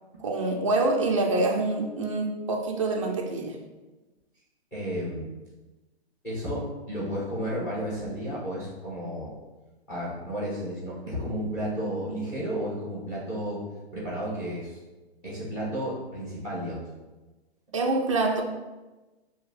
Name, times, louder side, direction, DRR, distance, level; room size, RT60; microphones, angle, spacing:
voice 1, 0.2-3.6 17.7-18.4, right 2 dB, 30° right, 0 dB, 0.4 m, -26 dB
voice 2, 4.7-5.3 6.2-9.3 9.9-13.6 13.9-14.8 15.2-16.8, equal, 10° left, -6 dB, 1.0 m, -32 dB
6.6 x 2.7 x 2.3 m, 1.1 s
hypercardioid pair, 170°, 32 cm